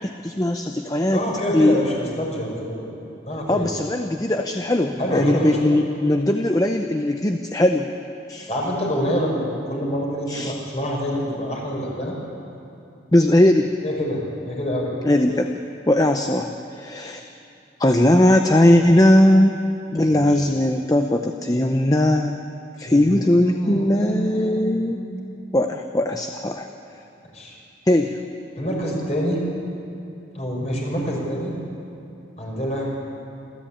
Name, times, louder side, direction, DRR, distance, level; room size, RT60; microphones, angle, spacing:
voice 1, 0.0-1.2 1.5-1.8 3.5-7.9 8.3-8.5 10.3-10.5 13.1-13.7 15.0-15.6 15.9-17.2 17.8-19.6 19.9-22.4 22.8-25.0 25.5-26.7 27.9-28.2, left 1 dB, 20° left, 5 dB, 0.7 m, -19 dB
voice 2, 1.1-2.9 3.2-3.7 5.0-5.6 8.5-12.2 13.8-14.9 20.1-20.2 22.9-25.0 27.3-27.5 28.6-29.4 30.3-31.5 32.4-32.9, equal, 35° left, -1 dB, 5.2 m, -26 dB
27.5 x 13.5 x 8.6 m, 2.7 s
head